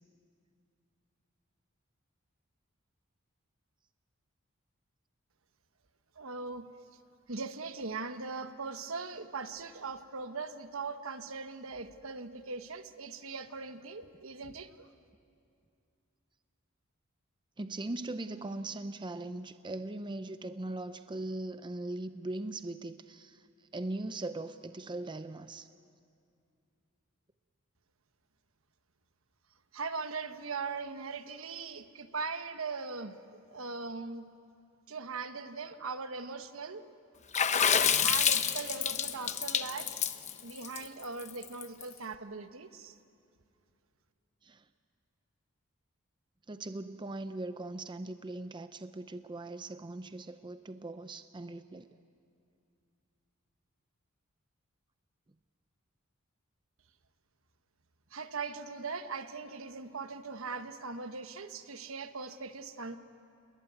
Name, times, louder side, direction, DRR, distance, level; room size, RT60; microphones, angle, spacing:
voice 1, 6.1-6.7 7.3-14.9 29.7-34.3 34.9-36.8 38.0-39.9 40.4-43.0 58.1-63.0, right 4 dB, 70° right, 9 dB, 1.2 m, -40 dB
voice 2, 17.6-25.7 39.3-39.4 44.4-44.6 46.5-51.9, right 2 dB, 20° right, 10 dB, 0.5 m, -40 dB
Water / Splash splatter, 37.3-41.8, left 7 dB, 35° left, 0.9 m, -28 dB
29.0 x 20.5 x 9.4 m, 2.5 s
head